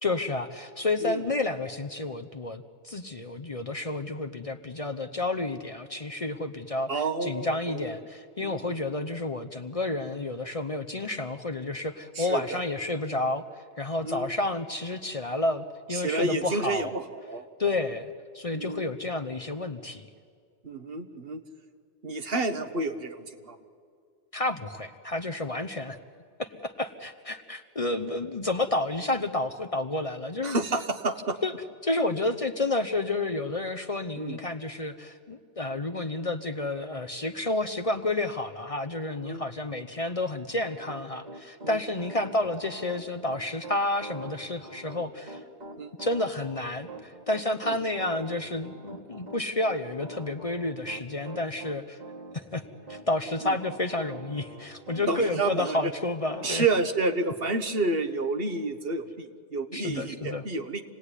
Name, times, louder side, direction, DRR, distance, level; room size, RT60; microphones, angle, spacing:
voice 1, 0.0-6.9 7.2-13.5 13.8-17.0 17.6-20.1 24.3-26.0 26.4-30.6 31.4-31.5 31.8-45.4 46.0-52.0 52.3-52.6 52.9-56.7 59.7-60.4, left 2 dB, 35° left, 6 dB, 0.9 m, -30 dB
voice 2, 6.9-7.9 8.4-9.1 12.2-12.6 14.0-14.3 15.9-17.5 18.5-18.8 20.6-21.4 22.0-23.6 30.4-31.4 34.2-34.4 39.2-39.4 41.6-41.8 45.8-45.9 47.6-47.8 53.4-53.5 55.1-55.9 56.4-60.8, right 3 dB, 60° right, 8 dB, 1.5 m, -30 dB
Piano, 40.6-55.8 56.3-56.6, right 2 dB, 40° right, 1.8 m, -44 dB
27.0 x 18.5 x 9.9 m, 2.1 s
omnidirectional pair, 1.1 m